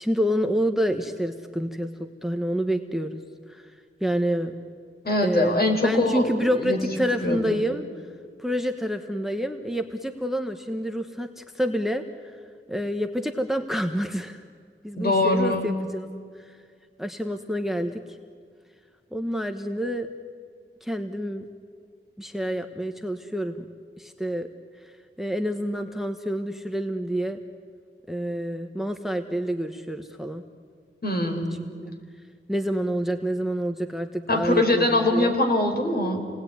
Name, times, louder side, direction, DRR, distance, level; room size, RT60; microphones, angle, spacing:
voice 1, 0.0-3.2 3.5-3.7 4.0-4.5 5.2-7.9 8.4-12.0 12.7-14.4 14.8-16.1 16.4-16.6 17.0-18.0 19.1-20.1 20.8-21.4 22.2-23.6 24.0-24.5 24.8-27.4 28.1-30.4 31.8-31.9 32.5-35.3, equal, ahead, 7 dB, 1.1 m, -28 dB
voice 2, 5.0-6.3 6.6-6.9 7.2-7.6 15.0-15.7 31.0-31.5 34.3-36.3, left 2 dB, 50° left, 3 dB, 4.5 m, -23 dB
28.5 x 19.5 x 9.4 m, 2.1 s
wide cardioid pair, 105°, 21 cm